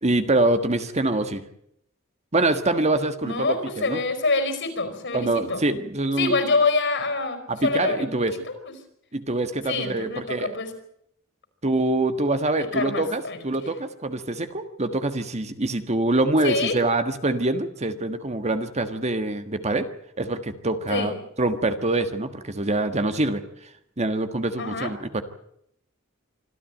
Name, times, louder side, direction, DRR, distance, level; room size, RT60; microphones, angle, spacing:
voice 1, 0.0-1.4 2.3-3.5 3.8-4.0 5.1-6.3 7.5-8.4 9.1-10.6 11.6-19.9 20.2-21.1 21.4-23.4 24.0-25.2, right 2 dB, 35° right, 9 dB, 1.5 m, -25 dB
voice 2, 3.2-5.6 6.2-8.2 8.6-8.7 9.7-10.7 12.6-13.4 16.4-16.8 20.9-21.1 24.6-24.9, left 3 dB, 60° left, 9 dB, 4.9 m, -26 dB
25.5 x 14.0 x 9.1 m, 0.72 s
head